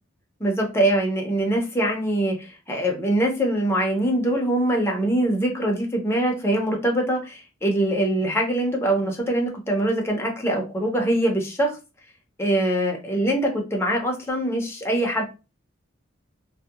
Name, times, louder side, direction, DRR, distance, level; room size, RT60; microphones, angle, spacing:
voice 1, 0.4-11.7 12.4-15.2, right 1 dB, 15° left, 0 dB, 0.6 m, -23 dB
2.7 x 2.2 x 2.3 m, 0.29 s
head